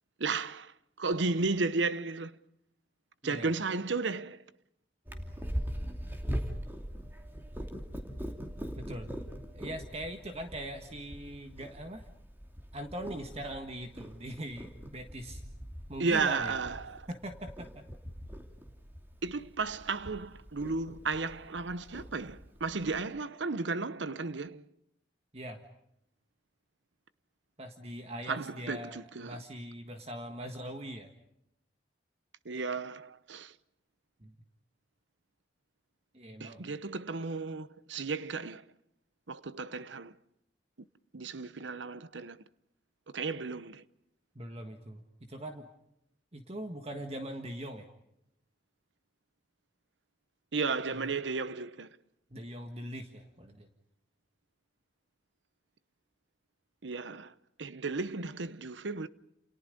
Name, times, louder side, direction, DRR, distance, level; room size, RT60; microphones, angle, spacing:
voice 1, 0.2-2.4 3.2-4.4 16.0-17.1 19.2-24.7 28.3-29.4 32.4-33.5 36.4-38.6 39.3-40.2 41.1-42.4 43.1-43.8 50.5-51.9 56.8-59.1, right 4 dB, 90° right, 0.9 m, -34 dB
Purr, 5.1-23.0, equal, 10° right, 2.7 m, -42 dB
voice 2, 8.8-9.1 9.5-12.0 12.7-15.4 15.9-16.5 17.1-17.8 25.3-25.6 27.6-31.1 34.2-34.3 36.1-36.6 44.4-45.7 46.3-47.9 50.9-51.2 52.3-53.7, right 1 dB, 35° right, 1.7 m, -41 dB
29.5 x 29.0 x 5.3 m
head